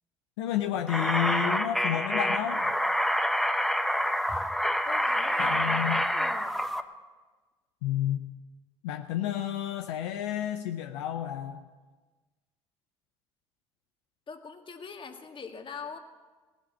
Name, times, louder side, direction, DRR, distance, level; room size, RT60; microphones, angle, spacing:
voice 1, 0.4-2.8 5.4-6.0 7.8-8.3 8.8-11.6, left 11 dB, 75° left, 7 dB, 0.7 m, -31 dB
sound 1, 0.9-6.8, equal, ahead, 1.1 m, -27 dB
voice 2, 4.9-6.6 14.3-16.0, left 5 dB, 35° left, 5 dB, 2.0 m, -43 dB
18.5 x 9.8 x 7.4 m, 1.3 s
hypercardioid pair, 55°, 14 cm